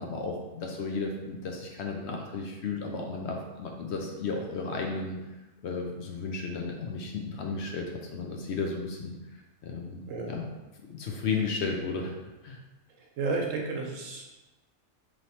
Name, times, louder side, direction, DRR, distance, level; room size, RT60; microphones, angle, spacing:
voice 1, 0.0-5.2 5.6-10.5 10.9-12.2 12.4-12.6, left 4 dB, 65° left, 1 dB, 0.8 m, -34 dB
voice 2, 13.0-14.2, right 3 dB, 80° right, 0 dB, 1.1 m, -32 dB
3.2 x 2.9 x 4.1 m, 1.1 s
omnidirectional pair, 1.3 m